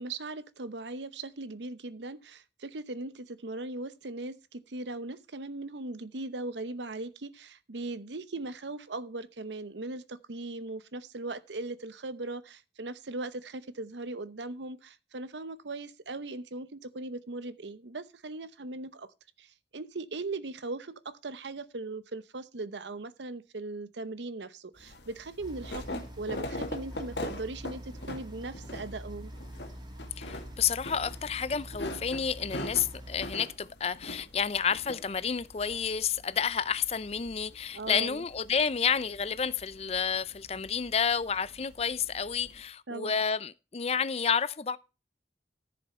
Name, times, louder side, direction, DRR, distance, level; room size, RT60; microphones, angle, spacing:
voice 1, 0.0-19.1 19.4-19.5 19.7-29.3 37.7-38.2 42.9-43.2, right 2 dB, 85° right, 0.9 m, -39 dB
sound 1, 24.8-42.6, left 1 dB, 75° left, 2.0 m, -43 dB
sound 2, 25.4-33.4, right 1 dB, 25° right, 0.8 m, -45 dB
voice 2, 30.2-44.8, left 7 dB, 35° left, 0.5 m, -30 dB
14.0 x 6.9 x 4.3 m
head